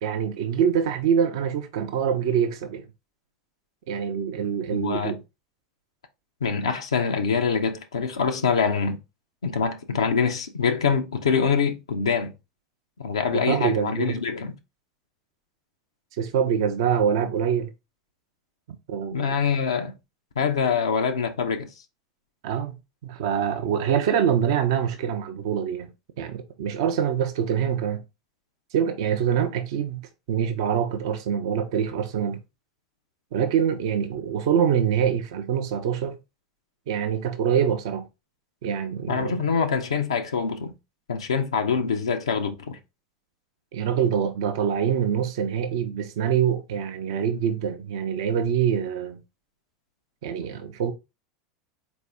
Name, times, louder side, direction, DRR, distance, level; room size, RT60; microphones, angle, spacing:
voice 1, 0.0-2.9 3.9-5.2 13.3-14.2 16.2-17.7 18.9-19.4 22.4-22.7 23.0-25.9 26.2-28.0 28.7-32.4 33.3-36.2 36.9-38.0 38.6-39.5 43.7-49.2 50.2-50.9, right 8 dB, 65° right, 0.5 m, -25 dB
voice 2, 4.7-5.1 6.4-9.0 9.4-12.3 13.0-14.5 19.1-19.9 20.4-21.7 39.1-40.7 41.1-42.8, left 6 dB, 80° left, 0.5 m, -24 dB
4.1 x 2.6 x 3.4 m
hypercardioid pair, 85°, 3 cm